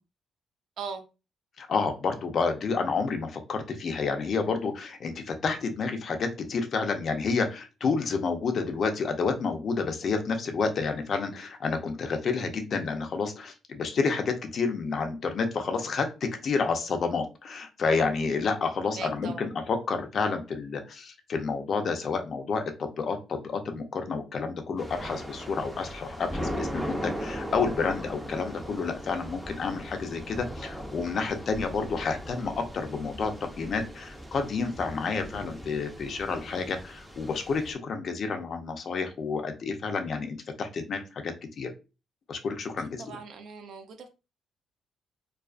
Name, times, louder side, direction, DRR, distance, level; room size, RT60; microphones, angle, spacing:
voice 1, 1.6-41.7 42.3-43.2, left 4 dB, 55° left, 6 dB, 0.5 m, -30 dB
voice 2, 18.9-19.5 43.0-44.1, right 5 dB, 70° right, 6 dB, 0.5 m, -39 dB
Thunder / Rain, 24.8-37.7, equal, ahead, 0.5 m, -38 dB
2.4 x 2.3 x 2.3 m, 0.30 s
cardioid pair, 90°, 0 cm